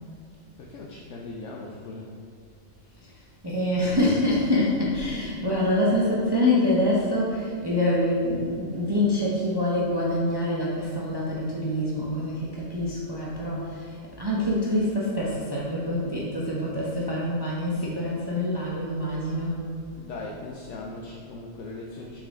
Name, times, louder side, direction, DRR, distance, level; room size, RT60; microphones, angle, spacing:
voice 1, 0.6-2.1 19.9-22.2, left 2 dB, 70° left, -1 dB, 0.9 m, -39 dB
voice 2, 3.4-19.6, left 1 dB, 25° right, -5 dB, 0.6 m, -25 dB
6.2 x 4.3 x 3.5 m, 2.3 s
omnidirectional pair, 1.4 m